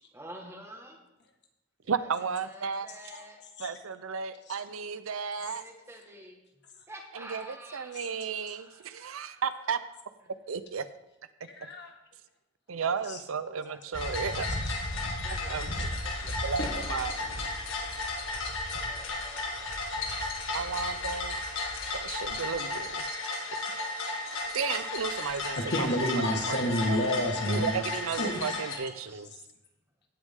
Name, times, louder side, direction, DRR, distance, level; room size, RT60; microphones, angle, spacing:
voice 1, 0.1-1.0 2.0-3.4 5.4-6.4 6.9-9.4 12.7-13.2 13.6-14.5 15.2-16.2 18.1-19.5 28.3-28.4 28.7-29.3, right 1 dB, 15° right, 2 dB, 1.5 m, -50 dB
voice 2, 1.9-2.9 3.6-5.6 7.1-9.8 10.5-10.8 12.7-14.5 15.5-15.9 16.2-17.4 20.5-21.4 22.0-23.1 24.5-25.6 26.5-26.6 26.9-27.0 27.5-29.3, right 6 dB, 85° right, 13 dB, 0.6 m, -33 dB
voice 3, 7.9-8.3 11.5-11.9 13.0-13.2 15.8-15.9 25.6-27.9 28.2-28.6, left 1 dB, 55° left, 3 dB, 1.6 m, -30 dB
sound 1, 13.9-28.8, left 2 dB, 75° left, 2.0 m, -34 dB
16.5 x 6.3 x 3.6 m, 0.96 s
head